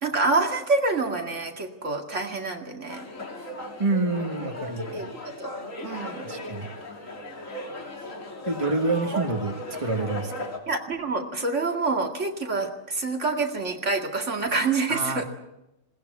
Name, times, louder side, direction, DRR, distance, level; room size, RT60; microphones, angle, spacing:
voice 1, 0.0-3.1 4.6-5.6 5.8-6.3 9.1-9.2 10.7-15.3, right 3 dB, 60° right, 3 dB, 2.5 m, -27 dB
sound 1, 2.9-10.6, left 1 dB, 75° left, 3.2 m, -37 dB
voice 2, 3.8-5.1 6.2-6.7 8.5-10.5 14.9-15.3, right 3 dB, 25° right, 5 dB, 1.7 m, -28 dB
21.0 x 18.5 x 8.3 m, 0.90 s
omnidirectional pair, 1.4 m